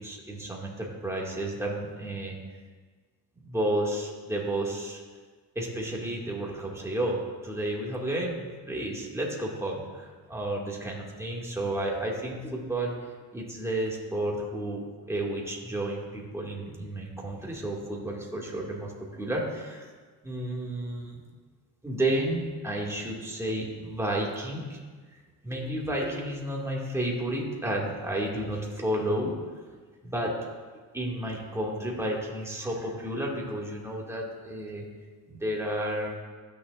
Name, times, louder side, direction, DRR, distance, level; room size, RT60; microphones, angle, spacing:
voice 1, 0.0-2.4 3.4-5.0 5.6-12.9 13.3-19.9 20.2-21.2 21.8-24.8 25.4-29.3 30.0-30.3 30.9-34.8 35.3-36.2, right 1 dB, 5° right, -3 dB, 2.4 m, -31 dB
20.5 x 6.9 x 2.6 m, 1.4 s
cardioid pair, 100°, 37 cm